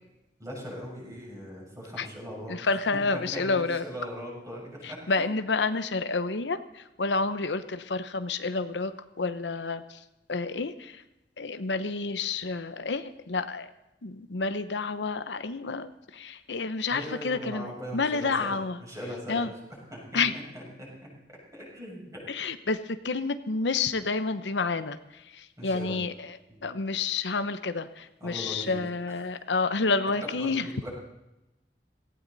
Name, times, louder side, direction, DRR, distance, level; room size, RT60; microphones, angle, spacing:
voice 1, 0.4-2.8 3.1-5.3 5.5-5.6 16.9-19.5 19.9-21.1 21.5-22.2 25.6-26.0 26.5-26.7 28.2-28.8 29.1-29.2 30.4-30.9, equal, 20° right, -4 dB, 6.7 m, -40 dB
voice 2, 2.5-3.8 4.8-8.9 9.2-10.0 10.3-11.0 11.4-13.7 14.0-18.8 19.3-19.5 20.1-20.3 22.3-25.0 25.3-26.4 26.6-30.6, left 4 dB, 85° left, 11 dB, 0.9 m, -29 dB
17.5 x 16.0 x 4.1 m, 0.94 s
head